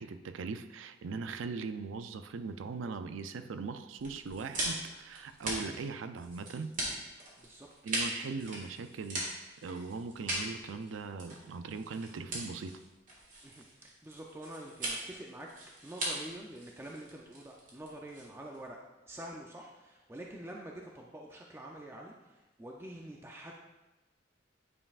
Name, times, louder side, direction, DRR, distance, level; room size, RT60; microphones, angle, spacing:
voice 1, 0.0-6.7 7.8-12.8, right 4 dB, 85° right, 9 dB, 0.4 m, -40 dB
sound 1, 4.0-18.7, right 1 dB, 45° right, 1.8 m, -40 dB
voice 2, 7.4-7.7 13.4-15.5 15.8-18.8 19.1-23.5, right 1 dB, 15° right, -1 dB, 0.4 m, -46 dB
9.4 x 5.3 x 2.4 m, 1.1 s
head